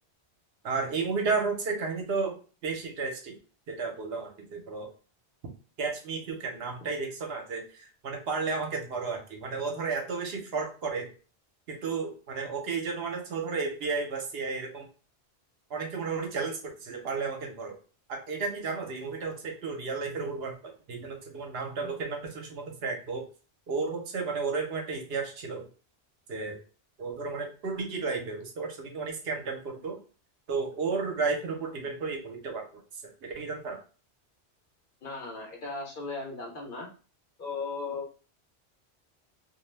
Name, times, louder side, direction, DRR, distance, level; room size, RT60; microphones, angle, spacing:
voice 1, 0.6-3.4 3.7-4.9 5.8-11.1 11.7-14.9 15.7-17.8 18.1-23.2 23.7-25.7 26.3-26.6 27.0-30.0 30.5-32.8 33.2-33.8, right 4 dB, 70° right, 3 dB, 0.8 m, -33 dB
voice 2, 35.0-36.9 37.4-38.2, left 4 dB, 55° left, 0 dB, 0.9 m, -37 dB
2.3 x 2.1 x 3.1 m, 0.36 s
omnidirectional pair, 1.1 m